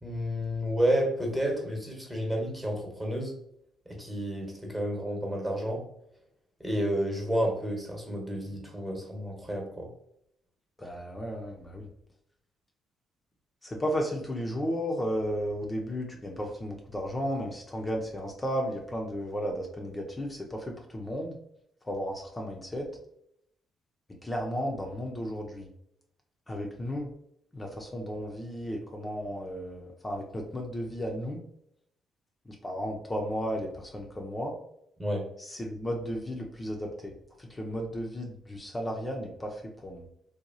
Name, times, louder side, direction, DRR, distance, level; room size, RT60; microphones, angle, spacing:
voice 1, 0.0-3.3 3.8-5.8 6.6-9.9 35.0-35.3, equal, 15° right, 0 dB, 1.1 m, -30 dB
voice 2, 10.8-11.9 13.6-21.4 21.8-22.9 24.2-25.7 26.5-27.1 27.5-31.4 32.6-34.5 35.5-40.0, equal, 20° left, 1 dB, 0.6 m, -34 dB
2.8 x 2.3 x 2.6 m, 0.75 s
supercardioid pair, 55°, 0 cm